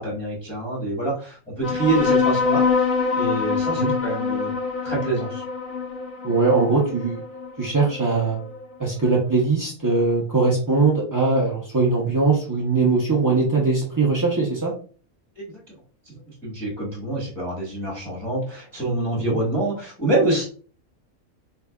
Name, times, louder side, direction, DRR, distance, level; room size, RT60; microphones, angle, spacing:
voice 1, 0.0-2.6 3.1-4.5 4.8-5.4 15.4-15.5 16.0-16.1 16.4-20.4, right 2 dB, ahead, -6 dB, 1.4 m, -26 dB
sound 1, 1.6-8.6, left 5 dB, 70° left, 1.2 m, -24 dB
voice 2, 6.2-7.2 7.6-8.4 8.8-14.7 19.2-19.4, right 3 dB, 25° right, -5 dB, 0.4 m, -21 dB
3.8 x 3.2 x 2.3 m, 0.41 s
omnidirectional pair, 1.5 m